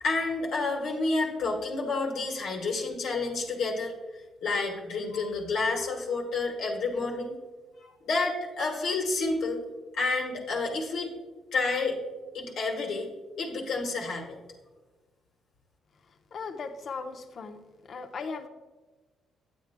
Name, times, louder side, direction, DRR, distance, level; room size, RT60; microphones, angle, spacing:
voice 1, 0.0-3.9 4.4-7.3 7.8-9.6 9.9-11.1 11.5-12.0 12.3-13.1 13.4-14.4, left 3 dB, 75° left, 0 dB, 1.4 m, -29 dB
voice 2, 16.3-18.5, left 4 dB, 55° left, 6 dB, 0.7 m, -38 dB
9.7 x 8.2 x 2.2 m, 1.3 s
cardioid pair, 90°, 0 cm